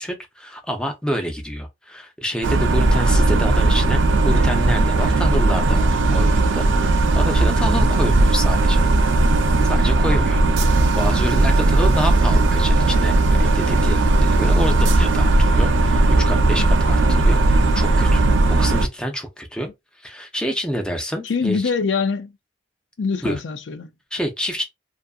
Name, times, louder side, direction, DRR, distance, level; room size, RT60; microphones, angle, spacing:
voice 1, 0.0-8.9 9.6-21.7 23.2-23.4 24.1-24.6, equal, 5° left, 0.4 m, -28 dB
sound 1, 2.4-18.9, right 2 dB, 85° right, 0.4 m, -17 dB
voice 2, 21.2-22.3 23.0-23.9, left 5 dB, 75° left, 0.4 m, -23 dB
2.6 x 2.4 x 2.4 m
head